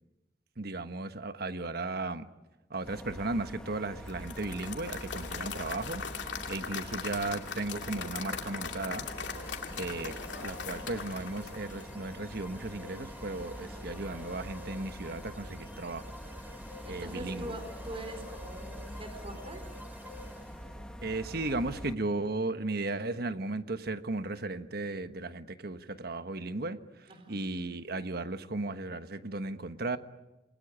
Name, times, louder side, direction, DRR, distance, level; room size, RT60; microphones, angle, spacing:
voice 1, 0.6-2.3 2.7-9.1 9.8-16.1 16.9-17.5 21.0-30.0, right 2 dB, 60° right, 10 dB, 1.3 m, -35 dB
sound 1, 2.8-21.9, equal, 5° left, 1.4 m, -45 dB
Applause / Crowd, 4.1-12.2, left 6 dB, 75° left, 2.7 m, -40 dB
sound 2, 9.1-20.9, left 1 dB, 10° right, 6.6 m, -50 dB
voice 2, 9.6-10.0 16.8-19.7 27.1-27.5, right 1 dB, 30° right, 7 dB, 4.1 m, -43 dB
28.0 x 21.0 x 9.7 m, 1.0 s
head